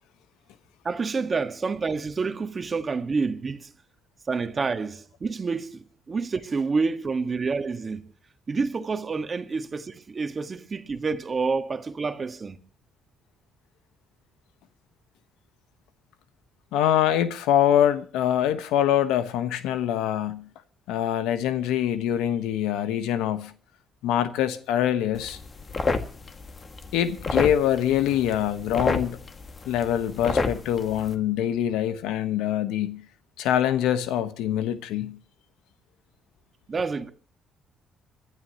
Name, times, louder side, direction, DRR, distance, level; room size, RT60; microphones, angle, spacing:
voice 1, 0.8-3.7 4.3-8.0 8.5-12.6 36.7-37.1, right 4 dB, 35° right, 1.5 m, -28 dB
voice 2, 16.7-20.5 20.9-23.5 24.0-25.4 26.9-29.2 29.7-33.0 33.4-35.2, left 10 dB, 90° left, 1.1 m, -24 dB
sound 1, 25.1-31.1, left 4 dB, 40° left, 1.9 m, -30 dB
26.5 x 12.0 x 2.9 m
supercardioid pair, 75°, 0 cm